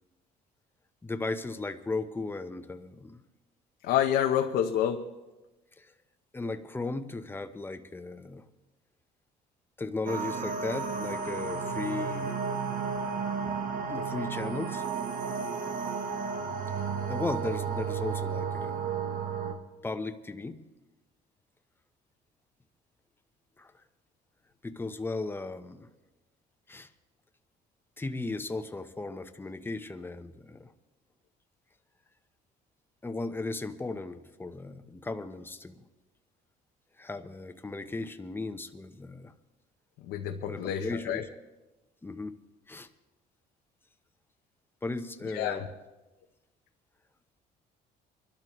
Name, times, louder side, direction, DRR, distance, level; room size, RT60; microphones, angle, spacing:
voice 1, 1.0-3.2 5.8-5.9 6.3-8.5 9.8-12.4 13.4-14.9 16.8-19.0 19.8-20.6 23.6-23.7 24.6-25.9 26.7-26.9 28.0-30.7 33.0-35.8 37.0-39.3 40.4-41.3 42.0-42.4 42.7-42.9 44.8-45.6, left 3 dB, 15° left, 9 dB, 0.9 m, -36 dB
voice 2, 3.8-5.1 40.0-41.3 45.3-45.7, left 10 dB, 85° left, 3 dB, 0.9 m, -28 dB
sound 1, 10.1-19.5, right 5 dB, 55° right, 1.5 m, -33 dB
24.5 x 12.0 x 3.1 m, 1.1 s
cardioid pair, 110°, 17 cm